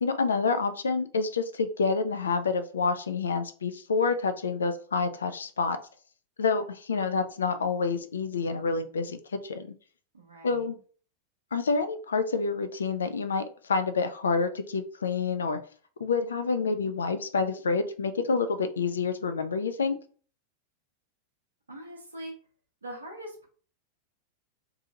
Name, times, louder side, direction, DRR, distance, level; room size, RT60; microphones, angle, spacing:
voice 1, 0.0-5.8 6.4-9.7 10.4-10.7 11.5-15.6 16.0-20.0, left 4 dB, 70° left, 11 dB, 0.3 m, -28 dB
voice 2, 10.1-10.7 21.7-22.3 22.8-23.5, right 1 dB, 75° right, 1 dB, 0.6 m, -42 dB
2.6 x 2.3 x 2.7 m, 0.43 s
figure-of-eight pair, 90°, 0 cm